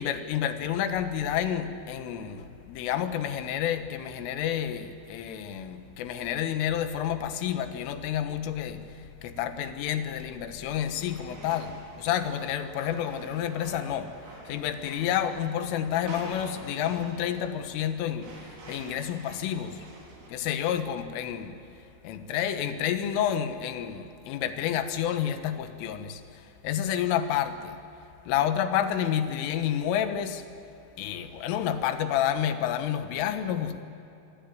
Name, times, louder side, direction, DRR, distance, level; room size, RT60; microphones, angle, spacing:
voice 1, 0.0-14.1 14.5-18.3 18.7-19.8 20.3-21.5 22.0-27.8 28.3-30.5 31.0-33.8, left 10 dB, 85° left, 9 dB, 3.9 m, -29 dB
sound 1, 10.8-20.3, right 2 dB, 65° right, 6.7 m, -47 dB
26.5 x 20.0 x 9.2 m, 2.8 s
omnidirectional pair, 5.7 m